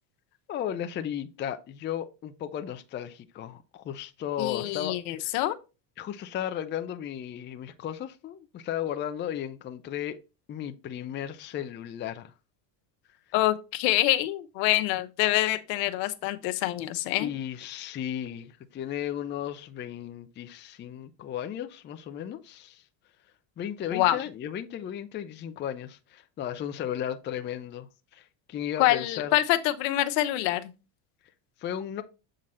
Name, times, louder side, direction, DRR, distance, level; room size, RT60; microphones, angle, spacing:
voice 1, 0.5-4.9 5.2-5.3 6.0-10.2 10.5-12.3 17.2-22.8 23.6-29.4 31.6-32.0, left 10 dB, 25° left, 0.5 m, -35 dB
voice 2, 4.4-5.6 13.3-17.3 23.9-24.2 28.8-30.7, left 15 dB, 80° left, 1.0 m, -26 dB
7.6 x 3.8 x 4.2 m
cardioid pair, 130°, 49 cm